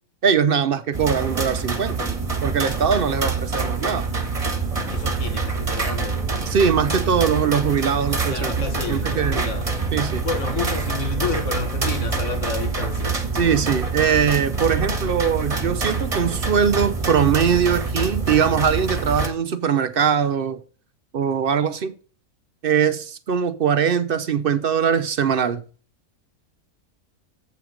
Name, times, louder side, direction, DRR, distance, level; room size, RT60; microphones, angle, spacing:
voice 1, 0.2-2.1 2.4-4.1 6.5-9.5 9.9-10.2 13.3-20.6 21.1-21.9 22.6-25.6, right 7 dB, 55° right, 0.6 m, -21 dB
sound 1, 0.9-19.3, right 4 dB, 25° right, 1.3 m, -26 dB
voice 2, 4.9-6.2 8.3-9.7 10.2-13.3, left 4 dB, 55° left, 2.0 m, -30 dB
7.9 x 6.2 x 5.0 m
omnidirectional pair, 1.6 m